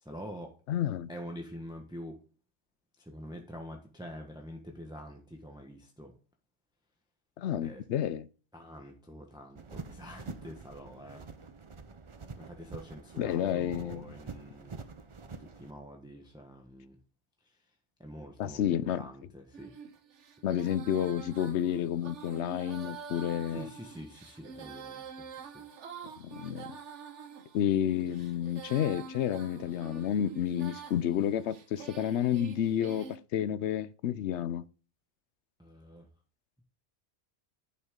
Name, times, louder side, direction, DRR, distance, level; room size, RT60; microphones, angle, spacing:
voice 1, 0.0-0.5 1.1-2.2 3.0-6.1 7.6-7.8 8.5-11.2 12.4-14.8 15.4-17.0 18.0-19.7 23.5-25.6 35.6-36.1, equal, 5° right, 1.1 m, -46 dB
voice 2, 0.7-1.1 7.4-8.3 13.2-14.1 18.4-19.0 20.4-23.7 26.2-26.7 27.5-34.6, left 10 dB, 75° left, 0.9 m, -30 dB
sound 1, 9.5-15.7, right 4 dB, 30° right, 0.6 m, -46 dB
Female singing, 19.5-33.2, right 4 dB, 85° right, 1.3 m, -46 dB
10.5 x 5.9 x 3.7 m
omnidirectional pair, 1.2 m